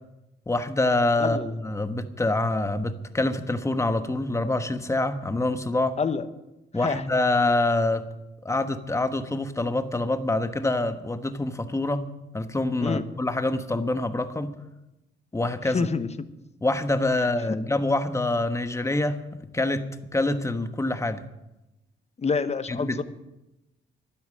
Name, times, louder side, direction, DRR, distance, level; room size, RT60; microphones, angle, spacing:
voice 1, 0.5-1.4 1.6-6.0 6.7-8.1 8.4-12.0 12.3-14.5 15.3-15.9 16.6-19.2 19.5-19.8 20.1-21.2 22.8-23.0, left 2 dB, 15° left, 9 dB, 1.2 m, -25 dB
voice 2, 1.2-1.5 6.0-6.3 6.7-7.0 12.8-13.0 15.6-16.1 17.2-17.3 22.2-23.0, left 5 dB, 35° left, 11 dB, 1.1 m, -27 dB
12.0 x 10.5 x 8.7 m, 0.95 s
cardioid pair, 90°, 20 cm